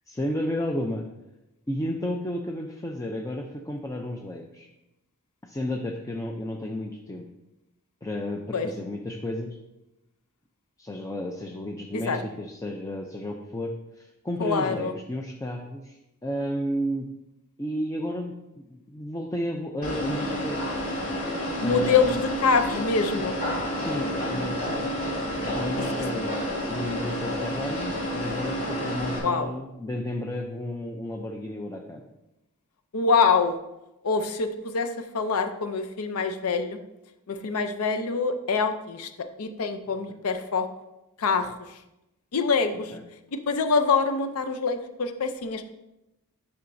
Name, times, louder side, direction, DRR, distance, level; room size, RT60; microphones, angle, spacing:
voice 1, 0.1-1.0 1.7-4.7 5.4-7.2 8.0-9.6 10.8-16.0 16.2-17.1 17.6-20.6 21.6-22.1 23.8-24.6 25.4-32.0 40.1-40.2 42.9-43.0, left 1 dB, 15° left, 1 dB, 0.5 m, -32 dB
voice 2, 14.4-14.9 21.6-23.3 25.8-26.1 29.2-29.5 32.9-33.6 34.0-36.8 37.3-40.7 41.2-41.8 42.3-43.0 43.3-45.6, left 5 dB, 70° left, 9 dB, 0.6 m, -25 dB
sound 1, 19.8-29.2, equal, 40° left, 2.7 m, -30 dB
9.7 x 5.7 x 2.6 m, 0.93 s
head